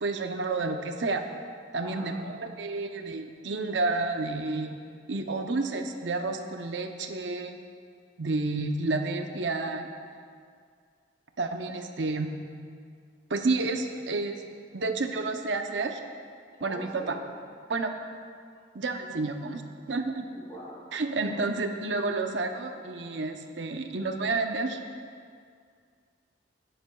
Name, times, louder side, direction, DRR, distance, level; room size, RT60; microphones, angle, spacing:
voice 1, 0.0-1.2 1.7-4.8 5.1-7.6 8.2-9.9 11.4-12.3 13.3-14.4 14.7-16.0 16.6-17.1 17.7-17.9 18.7-19.6 19.9-20.3 20.9-24.8, right 3 dB, 85° right, 5 dB, 0.7 m, -30 dB
voice 2, 1.8-2.1 16.6-17.2 18.5-18.6 20.3-20.8 21.2-21.5, equal, 25° left, -5 dB, 2.9 m, -44 dB
16.0 x 10.0 x 2.3 m, 2.1 s
head